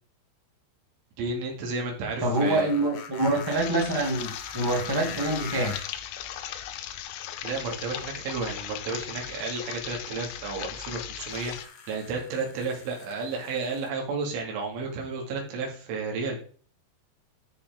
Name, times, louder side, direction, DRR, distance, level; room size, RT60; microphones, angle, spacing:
voice 1, 1.2-2.7 7.4-11.5 11.9-16.4, right 4 dB, 75° right, 4.9 m, -32 dB
voice 2, 2.2-5.8, right 2 dB, 10° right, 1.0 m, -26 dB
sound 1, 2.3-6.1 7.1-7.2 11.2-13.9, left 7 dB, 65° left, 3.0 m, -43 dB
sound 2, 3.5-11.7, left 11 dB, 85° left, 3.2 m, -38 dB
13.0 x 5.5 x 3.8 m
omnidirectional pair, 5.7 m